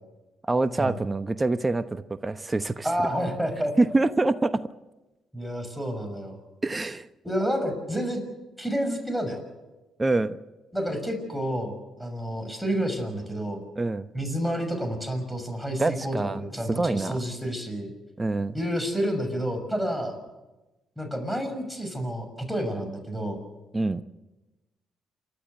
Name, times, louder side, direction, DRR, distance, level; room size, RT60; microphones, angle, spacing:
voice 1, 0.4-2.9 3.8-4.6 6.6-7.1 10.0-10.4 13.8-14.1 15.8-16.4 16.7-17.2 18.2-18.6 23.7-24.0, right 2 dB, 25° right, 11 dB, 1.0 m, -25 dB
voice 2, 2.8-3.7 5.3-6.4 7.2-8.2 8.6-9.4 10.7-13.6 14.1-17.9 18.5-20.2 21.0-23.4, equal, ahead, 5 dB, 6.2 m, -29 dB
29.0 x 13.0 x 8.1 m, 1.1 s
hypercardioid pair, 55°, 0 cm